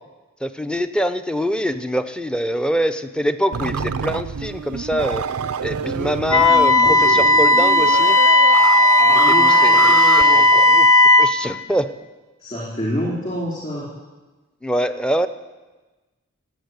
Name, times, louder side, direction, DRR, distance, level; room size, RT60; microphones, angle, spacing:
voice 1, 0.4-5.2 5.6-8.2 9.3-11.9 14.6-15.3, equal, 5° left, 9 dB, 0.6 m, -24 dB
sound 1, 3.5-10.2, right 6 dB, 90° right, 0.5 m, -26 dB
Wind instrument woodwind instrument, 6.3-11.3, left 2 dB, 70° left, 1.0 m, -14 dB
voice 2, 8.6-10.4 12.4-13.9, equal, 35° left, -6 dB, 4.2 m, -28 dB
17.0 x 9.0 x 9.5 m, 1.2 s
head